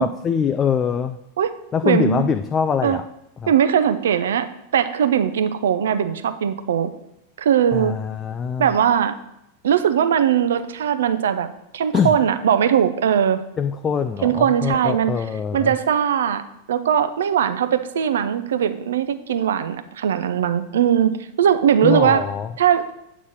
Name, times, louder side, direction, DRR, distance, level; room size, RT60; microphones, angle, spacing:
voice 1, 0.0-1.2 1.7-3.1 3.4-3.5 7.7-8.7 11.9-12.1 13.6-15.7 21.8-22.5, left 7 dB, 25° left, 8 dB, 0.4 m, -23 dB
voice 2, 1.8-2.2 2.8-3.0 3.5-4.5 4.7-6.9 7.4-8.0 8.6-9.1 9.6-11.5 11.7-13.4 14.2-15.2 15.5-16.4 16.7-22.3 22.6-22.8, right 9 dB, 60° right, 11 dB, 0.6 m, -19 dB
8.5 x 4.1 x 6.1 m, 0.83 s
figure-of-eight pair, 90°, 0 cm